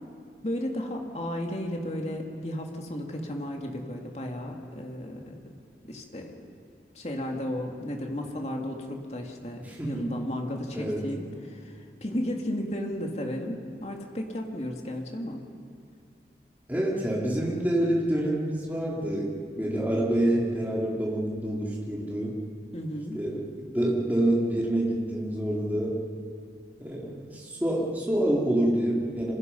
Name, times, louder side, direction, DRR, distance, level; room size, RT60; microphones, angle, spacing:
voice 1, 0.4-5.4 5.9-6.4 6.9-15.4 22.7-23.2, left 1 dB, 40° left, 1 dB, 2.5 m, -34 dB
voice 2, 9.6-10.1 10.7-11.0 16.7-19.3 19.5-22.4 23.1-23.4 23.7-26.0 26.8-29.3, right 1 dB, 10° right, -5 dB, 3.2 m, -27 dB
27.5 x 27.0 x 5.5 m, 2.3 s
head